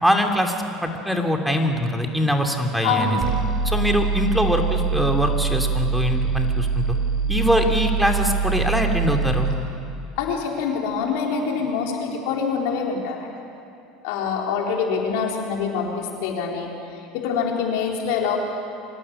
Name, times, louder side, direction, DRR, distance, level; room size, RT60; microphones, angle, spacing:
voice 1, 0.0-0.5 0.8-3.2 3.6-7.0 7.3-9.5, equal, ahead, 3 dB, 2.8 m, -22 dB
voice 2, 2.8-3.3 10.2-13.3 14.0-16.7 17.1-18.4, left 6 dB, 70° left, 0 dB, 4.2 m, -25 dB
sound 1, 3.2-9.6, right 5 dB, 45° right, 5.4 m, -24 dB
25.0 x 17.5 x 9.9 m, 2.6 s
hypercardioid pair, 85°, 0 cm